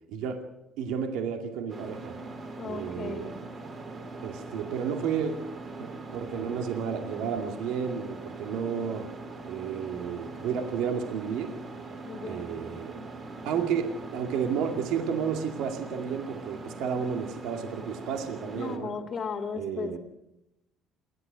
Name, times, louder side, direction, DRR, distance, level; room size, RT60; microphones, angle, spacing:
voice 1, 0.1-0.5 0.8-2.2 2.6-3.4 4.2-5.3 5.8-9.1 9.5-11.6 12.2-13.1 13.4-18.9 19.5-20.0, right 7 dB, 70° right, 4 dB, 2.3 m, -32 dB
sound 1, 1.7-18.8, right 3 dB, 30° right, 3.1 m, -41 dB
voice 2, 2.6-3.4 12.0-12.5 18.6-20.0, left 5 dB, 30° left, 5 dB, 2.0 m, -36 dB
28.5 x 12.0 x 9.3 m, 0.91 s
cardioid pair, 160°, 0 cm